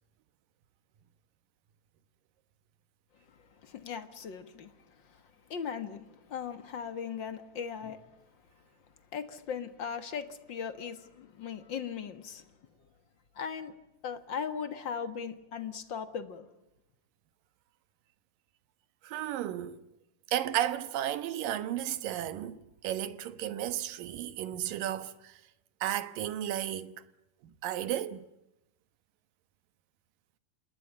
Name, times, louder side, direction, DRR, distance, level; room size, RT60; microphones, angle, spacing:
voice 1, 3.6-4.7 5.1-5.2 5.5-8.0 9.1-12.5 13.3-13.7 14.0-16.5, left 7 dB, 45° left, 1.6 m, -38 dB
voice 2, 19.0-19.8 20.3-25.4 25.8-27.0 27.6-28.3, right 12 dB, 80° right, 2.9 m, -33 dB
28.0 x 20.0 x 8.4 m
omnidirectional pair, 3.9 m